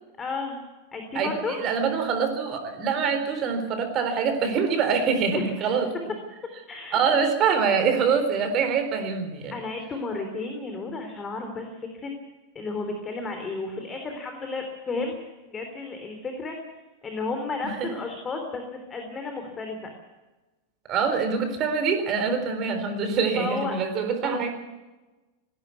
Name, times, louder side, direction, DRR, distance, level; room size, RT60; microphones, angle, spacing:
voice 1, 0.2-0.6 0.9-1.6 5.3-5.7 6.7-7.3 9.5-12.1 12.6-15.2 15.5-16.6 17.0-19.9 23.3-23.8 24.2-24.5, left 3 dB, 20° left, 4 dB, 3.5 m, -33 dB
voice 2, 1.2-5.9 6.9-9.6 17.8-17.9 20.9-24.5, right 6 dB, 35° right, 7 dB, 4.0 m, -25 dB
20.0 x 16.5 x 8.4 m, 1.1 s
figure-of-eight pair, 90°, 0 cm